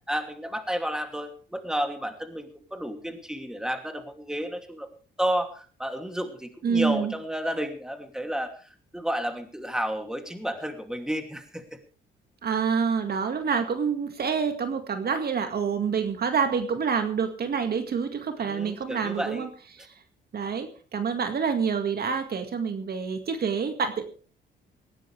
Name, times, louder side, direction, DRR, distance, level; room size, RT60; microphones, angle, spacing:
voice 1, 0.0-4.9 5.2-11.8 18.3-19.5, equal, 5° right, 6 dB, 2.8 m, -31 dB
voice 2, 6.6-7.1 12.4-19.5 19.8-19.9 20.3-24.0, right 6 dB, 50° right, 7 dB, 2.1 m, -27 dB
19.0 x 16.5 x 3.4 m, 0.38 s
cardioid pair, 90°, 20 cm